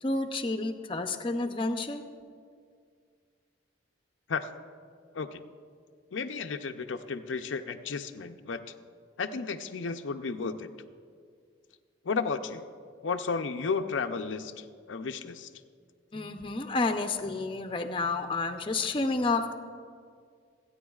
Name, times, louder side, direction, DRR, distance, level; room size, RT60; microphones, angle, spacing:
voice 1, 0.0-2.0 16.1-19.5, left 3 dB, 30° left, 6 dB, 0.6 m, -30 dB
voice 2, 6.1-8.6 9.2-10.7 12.0-12.6 13.0-15.5, left 5 dB, 90° left, 7 dB, 0.6 m, -33 dB
27.0 x 9.3 x 2.4 m, 2.1 s
head